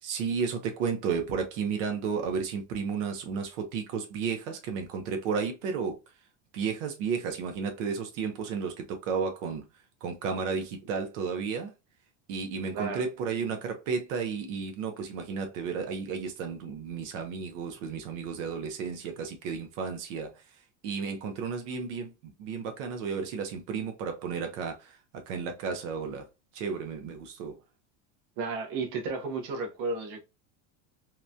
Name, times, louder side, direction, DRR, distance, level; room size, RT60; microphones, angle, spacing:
voice 1, 0.0-6.0 6.5-9.6 10.0-11.7 12.3-26.3 26.5-27.6, right 5 dB, 85° right, 0.7 m, -33 dB
voice 2, 28.4-30.2, right 4 dB, 55° right, 0.8 m, -33 dB
2.9 x 2.2 x 2.4 m
cardioid pair, 160°, 35 cm